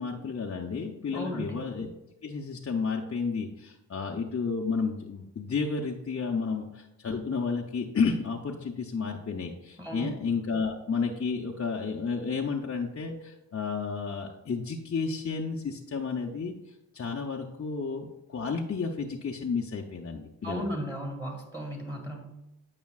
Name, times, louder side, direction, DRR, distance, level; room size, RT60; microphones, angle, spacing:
voice 1, 0.0-1.9 2.2-20.6, left 5 dB, 35° left, 0 dB, 0.7 m, -32 dB
voice 2, 1.1-1.7 9.8-10.2 20.4-22.4, equal, 10° right, 0 dB, 1.8 m, -35 dB
9.4 x 5.1 x 2.4 m, 0.93 s
supercardioid pair, 50°, 39 cm